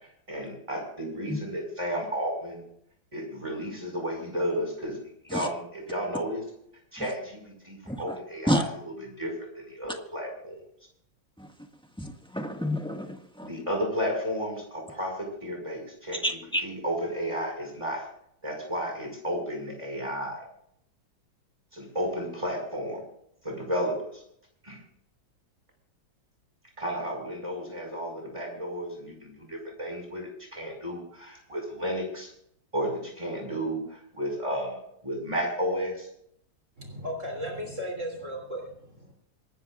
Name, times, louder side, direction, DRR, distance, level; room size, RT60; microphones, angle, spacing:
voice 1, 0.3-2.6 3.1-5.0 5.2-6.4 6.9-8.7 9.0-10.6 13.4-18.1 18.4-20.5 21.7-23.0 23.4-24.2 24.6-24.8 26.8-32.3 32.7-36.1, equal, 15° right, 1 dB, 5.7 m, -33 dB
voice 2, 12.0-13.5 16.2-16.6, equal, 5° left, 3 dB, 1.4 m, -29 dB
voice 3, 36.8-39.1, equal, 40° right, 0 dB, 3.5 m, -36 dB
26.5 x 13.0 x 2.5 m, 0.70 s
omnidirectional pair, 2.1 m